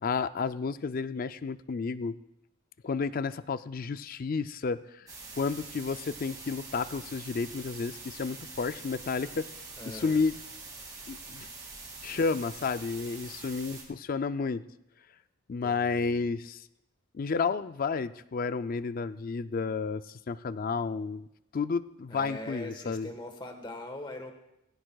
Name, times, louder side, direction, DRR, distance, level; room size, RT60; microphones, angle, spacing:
voice 1, 0.0-2.2 2.8-5.0 5.4-9.4 9.9-10.3 11.1-11.5 12.0-14.6 15.5-16.6 17.1-21.3 21.5-23.1, left 4 dB, 40° left, 13 dB, 0.4 m, -31 dB
sound 1, 5.1-13.8, right 3 dB, 15° right, 2.2 m, -45 dB
voice 2, 9.8-10.2 15.6-16.3 22.1-24.3, left 1 dB, 20° left, 5 dB, 1.3 m, -42 dB
19.5 x 16.5 x 2.3 m, 0.84 s
head